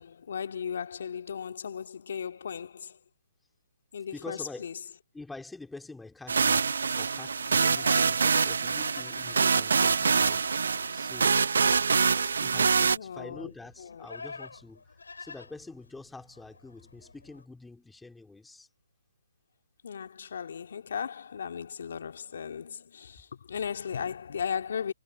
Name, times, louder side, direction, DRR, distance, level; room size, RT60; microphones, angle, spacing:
voice 1, 0.0-3.0 3.9-4.8 12.9-13.5 13.8-14.1 19.8-24.9, left 7 dB, 60° left, 2.0 m, -36 dB
voice 2, 4.1-4.7 5.1-6.7 7.0-10.4 10.9-11.5 12.4-18.7, left 3 dB, 5° left, 2.3 m, -46 dB
sound 1, 6.3-13.0, right 5 dB, 70° right, 0.6 m, -25 dB
Livestock farm animals working animals, 6.5-17.4, left 4 dB, 80° left, 4.2 m, -48 dB
hypercardioid pair, 150°, 0 cm